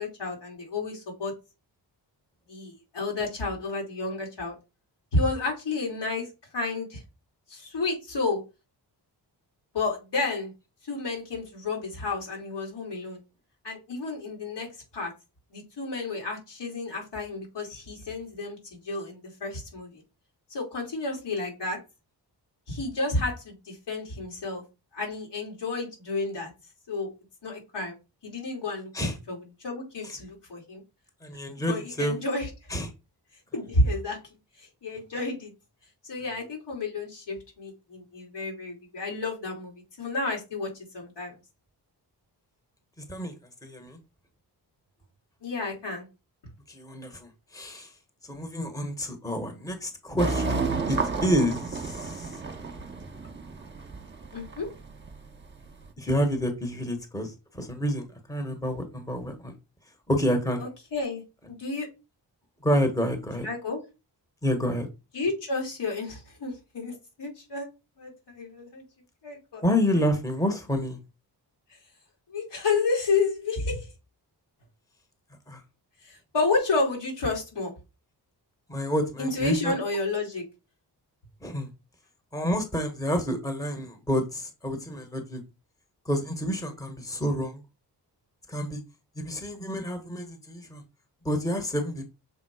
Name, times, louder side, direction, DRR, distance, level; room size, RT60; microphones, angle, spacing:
voice 1, 0.0-1.3 2.5-4.5 5.1-6.3 6.5-7.0 7.5-8.4 9.7-10.5 10.8-13.2 13.6-14.7 14.9-15.1 15.5-20.0 20.5-21.8 22.7-24.6 24.9-26.5 26.9-27.1 27.4-27.9 28.2-30.8 31.7-32.8 33.5-34.2 34.6-35.5 36.0-41.3 45.4-46.1 54.3-54.7 60.6-61.2 61.5-61.9 63.4-63.8 65.1-67.7 68.0-68.8 69.2-69.6 69.9-70.0 72.3-73.9 76.0-77.7 79.2-80.4, left 3 dB, 80° left, 0 dB, 3.3 m, -31 dB
voice 2, 31.2-32.1 32.7-32.9 43.1-43.3 43.6-44.0 46.7-47.9 48.3-51.0 51.2-52.3 56.0-59.5 60.1-60.6 62.6-63.5 64.4-64.9 69.6-71.0 75.5-75.6 78.7-79.8 81.4-81.7 82.3-85.4 86.0-87.6 88.5-88.8 89.2-90.8 91.2-92.1, equal, 10° left, 6 dB, 1.3 m, -28 dB
sound 1, 50.2-55.8, right 4 dB, 25° right, 1.1 m, -32 dB
6.7 x 3.6 x 4.9 m, 0.27 s
wide cardioid pair, 115°, 41 cm